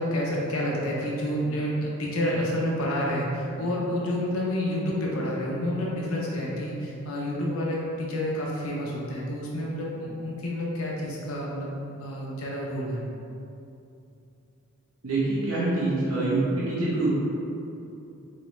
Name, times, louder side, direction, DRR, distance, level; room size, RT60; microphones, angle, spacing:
voice 1, 0.0-13.1, left 1 dB, 70° left, -3 dB, 0.6 m, -29 dB
voice 2, 15.0-17.1, right 2 dB, 85° right, -9 dB, 1.0 m, -25 dB
3.9 x 3.2 x 3.1 m, 2.7 s
head